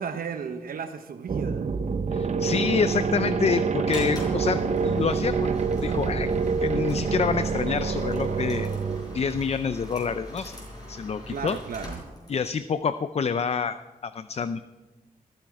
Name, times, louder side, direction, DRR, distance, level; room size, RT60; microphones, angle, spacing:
voice 1, 0.0-1.7 11.3-12.0, right 6 dB, 80° right, 7 dB, 0.9 m, -34 dB
sound 1, 1.3-9.6, right 5 dB, 50° right, 0.8 m, -27 dB
voice 2, 2.1-5.5 5.8-6.3 6.6-8.7 9.1-10.6 10.9-11.6 12.3-13.8 14.0-14.6, left 6 dB, 45° left, 12 dB, 0.5 m, -27 dB
sound 2, 3.9-12.6, left 1 dB, 25° left, 5.7 m, -41 dB
20.0 x 13.5 x 4.8 m, 1.1 s
wide cardioid pair, 140°, 15 cm